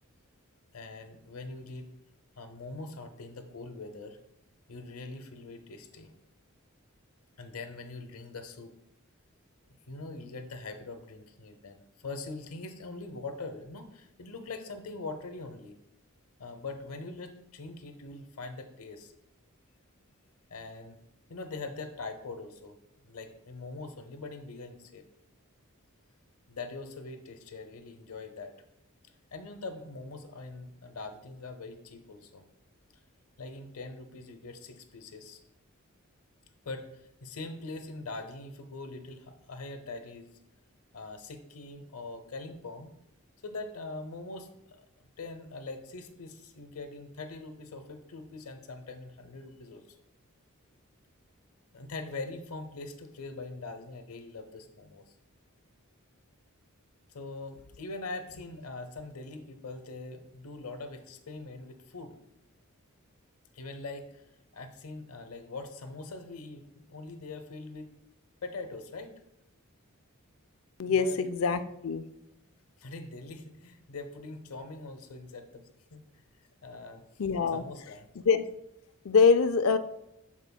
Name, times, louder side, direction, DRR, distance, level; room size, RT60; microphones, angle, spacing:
voice 1, 0.7-1.9 2.4-4.2 4.7-6.1 7.4-8.7 9.9-15.7 16.4-19.1 20.5-21.0 21.3-22.7 23.0-25.1 26.5-28.5 29.3-32.5 33.4-35.4 36.6-40.3 40.9-42.9 43.4-44.5 44.8-44.9 45.2-49.8 51.7-55.2 57.1-62.2 63.5-64.2 64.5-67.9 68.4-69.2 70.9-71.2 72.8-75.6 75.9-76.0 76.6-77.0 77.5-78.1, left 3 dB, 90° left, 8 dB, 0.8 m, -42 dB
voice 2, 70.8-72.0 77.2-77.6 78.2-78.4 79.1-79.8, left 5 dB, 75° left, 11 dB, 0.5 m, -24 dB
13.0 x 4.5 x 2.3 m, 0.79 s
head